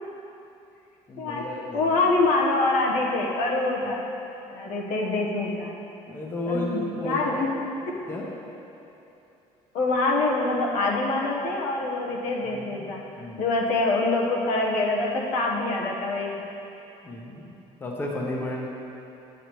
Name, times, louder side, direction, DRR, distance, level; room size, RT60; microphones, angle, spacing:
voice 1, 1.1-2.0 6.1-7.3 8.1-8.3 12.5-13.5 17.0-18.7, left 1 dB, 20° left, -2 dB, 0.8 m, -33 dB
voice 2, 1.7-4.0 4.5-5.8 6.4-7.6 7.9-8.0 9.7-13.0 13.4-16.3, left 2 dB, 80° left, -1 dB, 1.0 m, -25 dB
8.7 x 8.3 x 3.0 m, 2.9 s
cardioid pair, 165°, 12 cm